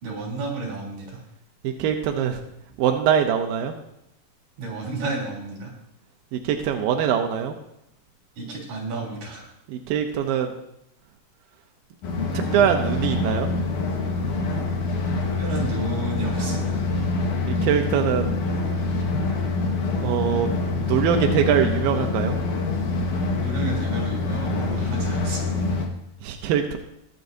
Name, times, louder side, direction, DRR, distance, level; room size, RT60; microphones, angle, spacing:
voice 1, 0.0-1.2 4.6-5.7 8.4-9.4 15.4-16.8 23.4-25.6, right 3 dB, 55° right, -3 dB, 4.7 m, -32 dB
voice 2, 1.6-2.4 2.8-3.7 6.3-7.5 9.7-10.5 12.3-13.5 17.5-18.3 20.0-22.4 26.2-26.8, right 8 dB, 80° right, 4 dB, 2.2 m, -23 dB
sound 1, 12.0-25.9, left 3 dB, 60° left, 2.5 m, -25 dB
21.5 x 8.3 x 2.7 m, 0.82 s
omnidirectional pair, 4.9 m